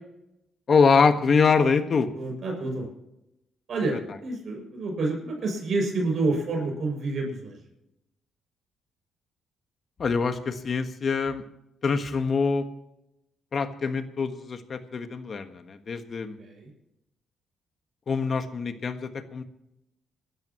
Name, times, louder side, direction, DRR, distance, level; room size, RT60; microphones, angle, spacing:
voice 1, 0.7-2.1 10.0-11.4 11.8-12.7 13.5-16.4 18.1-19.4, left 5 dB, 45° left, 8 dB, 1.4 m, -24 dB
voice 2, 2.1-2.9 3.7-7.6 16.4-16.7, right 2 dB, 55° right, 0 dB, 6.6 m, -28 dB
28.0 x 13.0 x 3.0 m, 0.88 s
cardioid pair, 85°, 0 cm